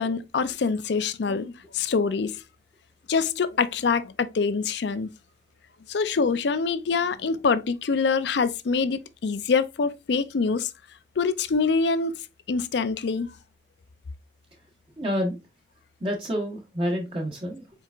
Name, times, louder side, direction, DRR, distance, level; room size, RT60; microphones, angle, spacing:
voice 1, 0.0-2.4 3.1-5.1 5.9-10.7 11.2-12.1 12.5-13.3, left 5 dB, 70° left, 0.4 m, -25 dB
voice 2, 15.0-15.4 16.0-17.7, equal, 30° right, 1.0 m, -28 dB
4.6 x 4.5 x 2.4 m
head